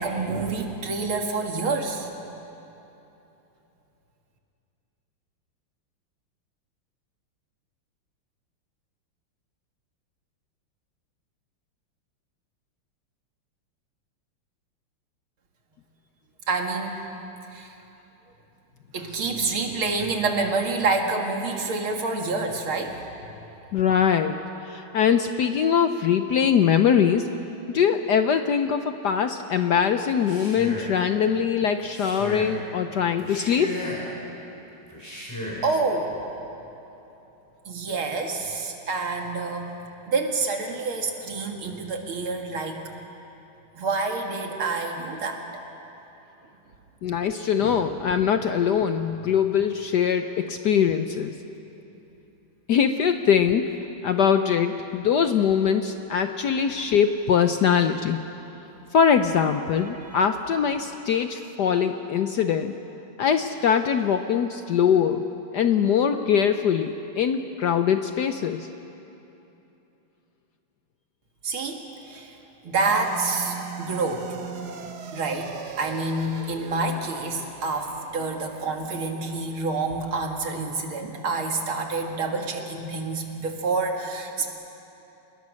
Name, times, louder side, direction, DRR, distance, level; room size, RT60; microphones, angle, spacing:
voice 1, 0.0-2.1 16.5-17.0 17.5-17.7 18.9-23.0 35.6-36.1 37.7-39.7 40.1-42.8 43.7-45.4 47.6-47.8 59.7-60.2 71.4-72.3 72.6-74.3 75.1-84.5, right 3 dB, 70° right, 2 dB, 2.8 m, -28 dB
voice 2, 23.7-27.3 27.7-33.7 47.0-51.3 52.7-53.7 54.0-58.2 58.9-62.7 63.2-65.3 65.5-68.7, left 7 dB, 65° left, 8 dB, 1.1 m, -22 dB
Male speech man speaking, 30.1-31.0 31.8-32.6 33.2-34.2 34.9-35.7, left 1 dB, 10° left, 5.2 m, -35 dB
sound 1, 72.7-81.2, right 7 dB, 55° right, 1.4 m, -41 dB
28.5 x 20.5 x 6.4 m, 3.0 s
omnidirectional pair, 2.4 m